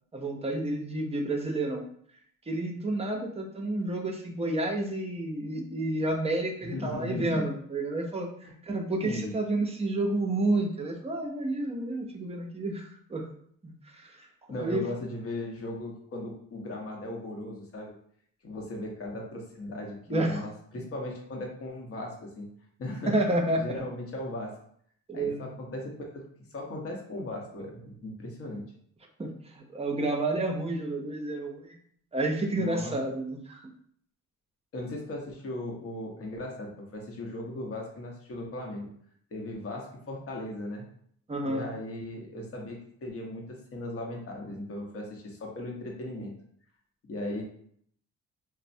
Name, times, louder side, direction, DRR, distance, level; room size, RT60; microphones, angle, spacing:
voice 1, 0.1-1.9 2.5-13.3 13.6-14.8 20.1-20.4 23.1-23.8 25.1-25.5 29.2-31.8 32.1-33.6 41.3-41.6, right 2 dB, 20° right, 2 dB, 0.5 m, -30 dB
voice 2, 6.6-7.4 8.4-8.5 9.0-9.3 14.5-17.9 18.4-22.5 22.8-23.1 23.6-24.5 25.1-26.2 26.5-28.7 32.6-33.0 34.7-38.9 39.3-40.9 41.4-46.3 47.1-47.4, left 1 dB, 50° left, 0 dB, 0.8 m, -37 dB
3.1 x 2.1 x 2.6 m, 0.64 s
cardioid pair, 90°, 30 cm